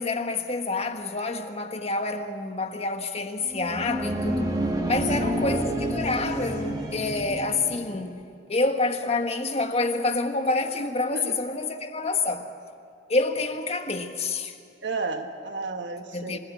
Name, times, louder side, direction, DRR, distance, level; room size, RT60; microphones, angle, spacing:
voice 1, 0.0-4.5 4.9-8.2 8.5-12.5 13.1-14.6 16.1-16.4, left 3 dB, 35° left, 1.4 m, -27 dB
sound 1, 3.4-8.1, right 1 dB, 20° right, 2.2 m, -29 dB
voice 2, 14.8-16.4, right 3 dB, 75° right, 1.4 m, -32 dB
27.0 x 16.5 x 8.5 m
head